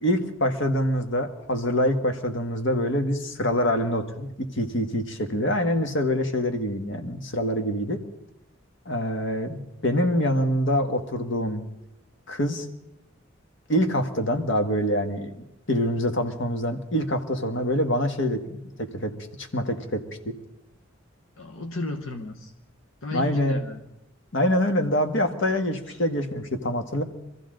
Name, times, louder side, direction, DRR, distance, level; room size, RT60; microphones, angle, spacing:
voice 1, 0.0-8.0 8.8-11.6 12.3-12.7 13.7-19.1 19.4-20.3 23.1-23.6 24.3-27.0, equal, 65° left, 6 dB, 1.6 m, -25 dB
voice 2, 21.4-22.5 23.0-23.8 25.9-26.0, left 2 dB, 85° left, 4 dB, 1.0 m, -34 dB
25.0 x 14.5 x 3.9 m, 0.87 s
head